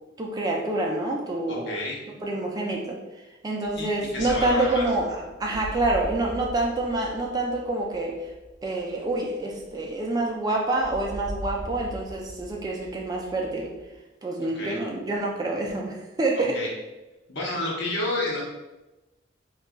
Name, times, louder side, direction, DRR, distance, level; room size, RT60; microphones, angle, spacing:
voice 1, 0.2-1.8 2.2-3.0 3.4-8.2 8.6-13.7 14.2-16.6, right 2 dB, 20° right, -1 dB, 0.3 m, -27 dB
voice 2, 1.5-2.0 3.8-3.9 4.1-4.9 14.5-14.8 16.4-16.7 17.3-18.4, left 2 dB, 65° left, -3 dB, 0.8 m, -30 dB
sound 1, 3.6-10.3 10.8-14.0, equal, 25° left, 0.7 m, -40 dB
3.8 x 2.3 x 2.2 m, 1.1 s
head